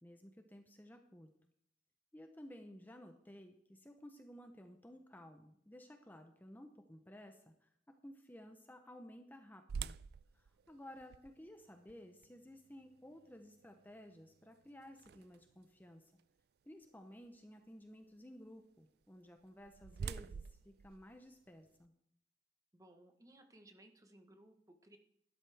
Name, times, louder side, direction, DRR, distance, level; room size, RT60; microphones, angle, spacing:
voice 1, 0.0-1.3 2.1-7.7 8.0-10.0 10.3-16.1 16.6-21.9, equal, 10° left, 5 dB, 0.7 m, -55 dB
sound 1, 9.7-15.6 16.2-16.3 16.9-17.1 19.2-21.9, right 6 dB, 60° right, 0.3 m, -49 dB
voice 2, 22.7-25.0, right 1 dB, 20° right, 6 dB, 1.1 m, -61 dB
12.5 x 11.0 x 3.4 m, 0.73 s
head